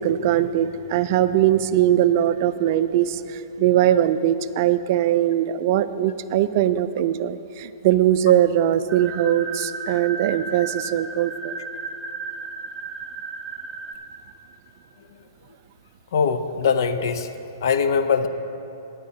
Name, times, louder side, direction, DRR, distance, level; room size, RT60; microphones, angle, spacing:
voice 1, 0.0-11.6, right 11 dB, 45° right, 13 dB, 0.4 m, -21 dB
sound 1, 8.9-13.9, right 4 dB, ahead, 0.7 m, -34 dB
voice 2, 16.1-17.3 17.6-18.3, left 6 dB, 65° left, 11 dB, 0.6 m, -21 dB
16.5 x 9.5 x 2.8 m, 2.9 s
hypercardioid pair, 140°, 2 cm